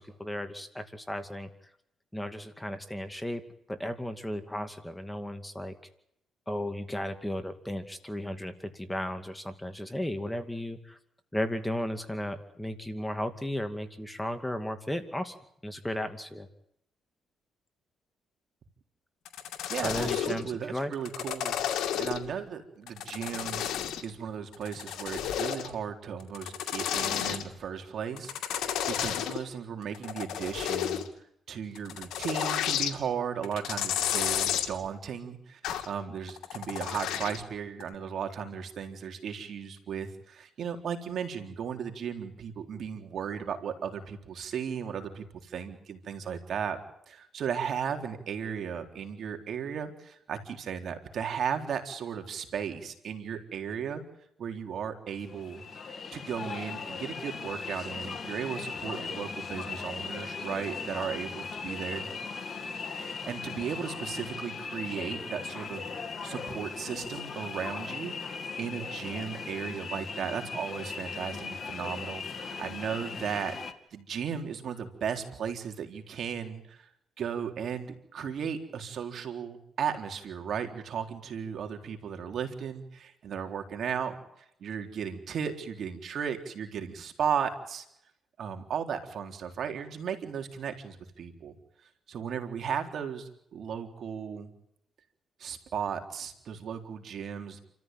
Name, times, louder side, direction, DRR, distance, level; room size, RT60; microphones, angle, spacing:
voice 1, 0.0-1.5 2.1-3.4 3.7-5.7 6.5-11.0 11.3-15.3 15.6-16.5 19.8-20.9, left 1 dB, 5° left, 8 dB, 2.4 m, -35 dB
sound 1, 19.2-20.4 20.9-22.3 22.9-24.1 24.5-25.7 26.2-27.4 28.2-29.4 29.8-31.1 31.7-32.9 33.4-34.7 35.6-35.9 36.3-37.4 37.8-37.9, left 10 dB, 80° left, 2.5 m, -31 dB
voice 2, 19.7-23.6 24.0-31.0 31.5-46.8 47.1-54.0 54.4-62.1 62.9-68.2 68.6-73.5 73.9-76.9 77.2-87.8 88.4-91.5 92.1-94.5 95.4-97.6, right 7 dB, 60° right, 5 dB, 3.9 m, -36 dB
sound 2, 55.1-73.7, left 5 dB, 40° left, 2.5 m, -38 dB
29.5 x 14.0 x 9.2 m, 0.77 s
cardioid pair, 90°, 0 cm